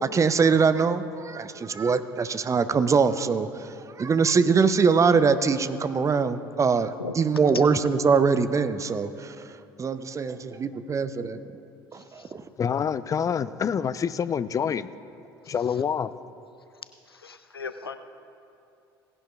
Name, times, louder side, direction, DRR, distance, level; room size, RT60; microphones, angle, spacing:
voice 1, 0.0-9.4 9.8-11.4 11.9-12.4, right 5 dB, 25° right, 0.6 m, -23 dB
voice 2, 11.9-12.3 15.4-15.5 17.1-18.0, left 4 dB, 90° left, 0.4 m, -39 dB
voice 3, 12.6-14.9 15.5-16.1, left 7 dB, 25° left, 0.4 m, -26 dB
18.0 x 11.0 x 2.3 m
figure-of-eight pair, 60°, 12 cm